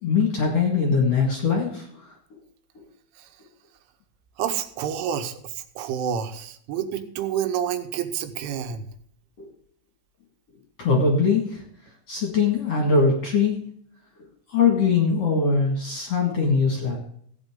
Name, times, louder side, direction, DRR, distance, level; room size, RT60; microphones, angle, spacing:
voice 1, 0.0-1.9 9.4-9.5 10.8-11.6 12.1-13.6 14.5-17.0, left 4 dB, 55° left, 0 dB, 1.9 m, -21 dB
voice 2, 4.4-8.9, right 9 dB, 80° right, 8 dB, 3.4 m, -29 dB
16.0 x 9.3 x 3.7 m, 0.64 s
omnidirectional pair, 5.7 m